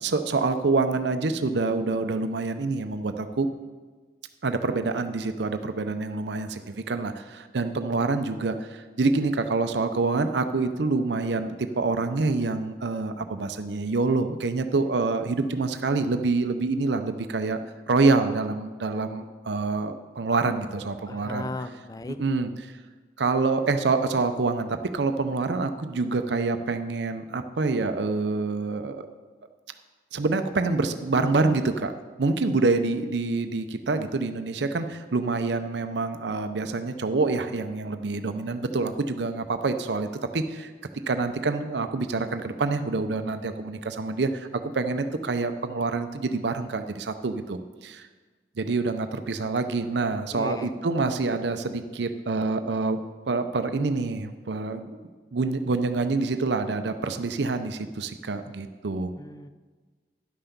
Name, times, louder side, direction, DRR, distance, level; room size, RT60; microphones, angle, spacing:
voice 1, 0.0-3.5 4.4-17.6 17.9-21.7 22.1-22.8 23.2-29.0 30.1-31.9 32.2-40.1 40.3-40.7 41.1-48.1 48.6-53.0 53.3-55.0 55.3-59.1, right 3 dB, 80° right, 8 dB, 0.6 m, -26 dB
voice 2, 21.1-22.2 50.3-50.7 59.2-59.5, left 2 dB, 20° left, 11 dB, 0.4 m, -36 dB
11.0 x 5.8 x 6.7 m, 1.4 s
head